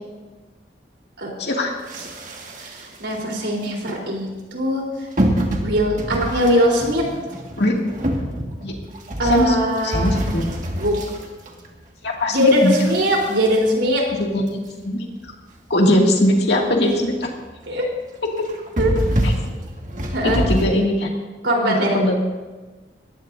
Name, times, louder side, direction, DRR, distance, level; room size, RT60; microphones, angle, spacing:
voice 1, 1.4-1.7 7.6-7.7 8.6-8.7 9.2-9.6 9.8-10.4 12.0-12.8 14.1-15.1 15.7-17.3 18.4-18.5 19.2-19.3 20.2-21.1 21.6-22.2, left 1 dB, 65° left, 0 dB, 2.3 m, -20 dB
sound 1, 1.9-3.1 3.6-4.0 5.2-11.9 12.4-14.5 15.0-15.1 15.3-15.4 15.8-15.9 16.3-16.4 16.7-17.1 17.5-17.7 18.4-20.7, equal, 45° right, 1.8 m, -26 dB
voice 2, 2.6-4.8 5.6-7.0 9.2-10.2 10.8-11.0 12.3-14.0 17.7-17.9 18.8-18.9 20.1-20.4 21.4-22.0, equal, 80° right, -1 dB, 3.8 m, -21 dB
21.0 x 15.5 x 2.7 m, 1.3 s
head